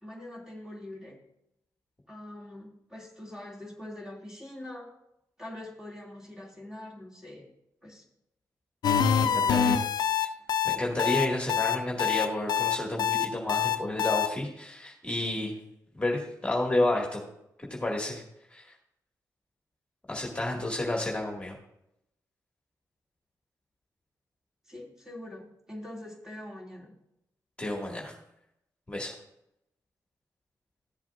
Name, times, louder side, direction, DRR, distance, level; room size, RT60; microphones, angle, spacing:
voice 1, 0.0-1.2 2.1-4.9 5.4-7.5 7.8-8.0 9.1-9.9 24.7-26.9, left 1 dB, 10° right, -3 dB, 2.5 m, -43 dB
sound 1, 8.8-14.3, left 8 dB, 75° left, 0.5 m, -25 dB
voice 2, 9.2-9.8 10.6-15.5 15.9-17.2 17.7-18.2 18.5-18.7 20.1-21.6 27.6-28.1 28.9-29.1, left 1 dB, 15° left, -2 dB, 2.0 m, -30 dB
14.0 x 7.5 x 2.5 m, 0.82 s
cardioid pair, 65°, 7 cm